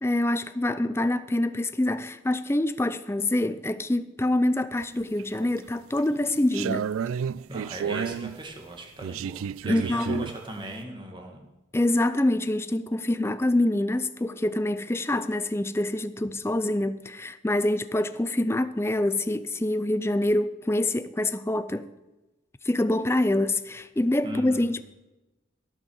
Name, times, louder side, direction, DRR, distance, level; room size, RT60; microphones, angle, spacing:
voice 1, 0.0-6.8 9.7-10.3 11.7-21.9 22.6-24.8, left 1 dB, 10° left, 0.4 m, -25 dB
sound 1, 4.8-5.4 6.0-8.4 9.0-10.4, right 7 dB, 90° right, 0.3 m, -31 dB
voice 2, 7.5-11.5 24.2-24.7, right 1 dB, 25° right, 1.9 m, -38 dB
17.0 x 6.3 x 7.1 m
head